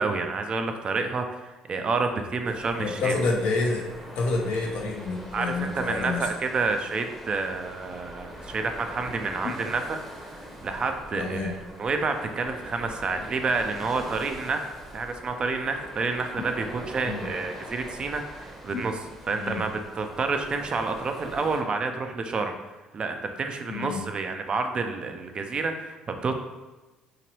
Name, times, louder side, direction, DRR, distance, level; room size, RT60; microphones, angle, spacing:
voice 1, 0.0-3.1 5.3-19.0 19.3-22.5 22.9-26.0 26.2-26.3, right 4 dB, 40° right, 6 dB, 0.4 m, -29 dB
sound 1, 2.4-21.6, equal, ahead, 0.8 m, -42 dB
voice 2, 2.8-3.9 4.2-6.2 11.1-11.5 17.0-17.3 19.3-19.6 23.7-24.0, left 3 dB, 65° left, 0 dB, 0.6 m, -28 dB
2.9 x 2.9 x 2.8 m, 1.2 s
hypercardioid pair, 55°, 2 cm